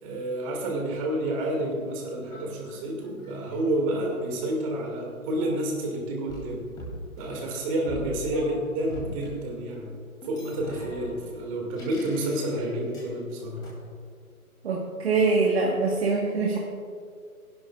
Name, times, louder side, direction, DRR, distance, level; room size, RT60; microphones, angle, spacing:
voice 1, 0.0-6.6 7.2-9.9 10.3-13.7, right 1 dB, 25° right, 0 dB, 2.3 m, -29 dB
sound 1, 2.3-5.8 6.3-9.3 10.2-13.1 13.6-13.7, equal, 10° left, 2.6 m, -43 dB
voice 2, 14.6-16.6, right 3 dB, 45° right, -2 dB, 1.5 m, -24 dB
23.5 x 11.0 x 2.4 m, 2.2 s
hypercardioid pair, 150°, 43 cm